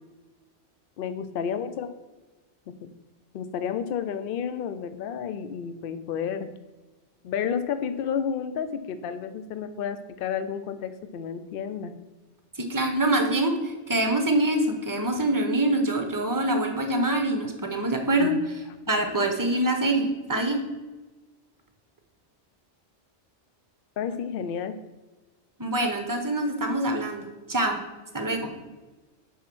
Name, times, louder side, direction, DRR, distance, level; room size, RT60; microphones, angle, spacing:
voice 1, 1.0-1.9 2.7-2.9 3.3-6.5 7.2-11.9 18.2-18.4 24.0-24.8, left 7 dB, 60° left, 11 dB, 0.7 m, -31 dB
voice 2, 12.6-18.3 18.9-20.6 25.6-27.8 28.1-28.5, right 1 dB, 20° right, 4 dB, 0.8 m, -25 dB
7.3 x 3.8 x 6.1 m, 1.2 s
omnidirectional pair, 1.2 m